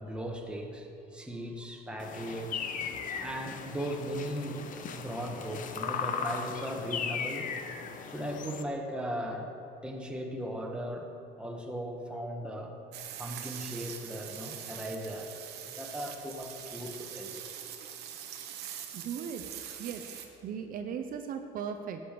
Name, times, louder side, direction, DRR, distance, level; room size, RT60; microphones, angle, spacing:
voice 1, 0.0-2.6 3.2-4.6 4.9-7.5 8.1-9.5 9.8-11.1 11.4-12.8 13.2-17.5, equal, 5° right, 1 dB, 1.2 m, -38 dB
sound 1, 2.0-8.6, left 6 dB, 50° left, 0.7 m, -37 dB
sound 2, 12.9-20.3, right 10 dB, 75° right, 1.0 m, -43 dB
voice 2, 18.9-19.4 19.8-20.0 20.4-22.0, right 7 dB, 55° right, 6 dB, 0.7 m, -37 dB
11.5 x 7.0 x 5.2 m, 2.7 s
cardioid pair, 110°, 17 cm